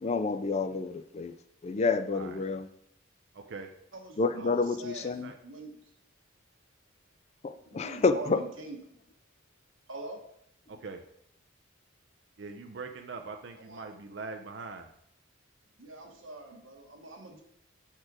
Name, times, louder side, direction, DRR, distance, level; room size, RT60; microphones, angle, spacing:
voice 1, 0.0-1.3 1.6-2.7 4.2-5.3 7.4-8.5, left 4 dB, 35° left, 10 dB, 0.4 m, -29 dB
voice 2, 3.3-3.7 4.4-4.6 5.2-5.4 10.7-11.0 12.4-14.9, right 4 dB, 60° right, 5 dB, 0.5 m, -42 dB
voice 3, 3.9-5.2 5.4-5.7 7.7-8.8 9.9-10.2 13.7-13.8 15.8-17.4, right 2 dB, 90° right, 3 dB, 1.3 m, -44 dB
4.9 x 4.4 x 6.1 m, 0.74 s
head